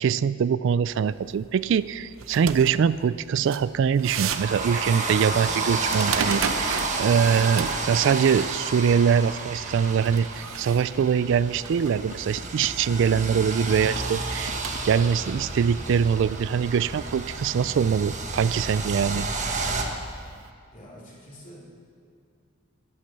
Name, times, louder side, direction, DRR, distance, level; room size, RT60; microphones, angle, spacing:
voice 1, 0.0-14.6 14.8-19.7, right 7 dB, 65° right, 16 dB, 0.3 m, -23 dB
sound 1, 0.9-20.5, right 6 dB, 80° right, 0.7 m, -38 dB
sound 2, 4.0-19.8, right 3 dB, 35° right, 1.3 m, -31 dB
sound 3, 12.0-16.0, left 2 dB, 90° left, 1.1 m, -42 dB
voice 2, 20.7-21.7, equal, 40° left, -5 dB, 3.8 m, -46 dB
12.5 x 11.5 x 6.6 m, 2.3 s
head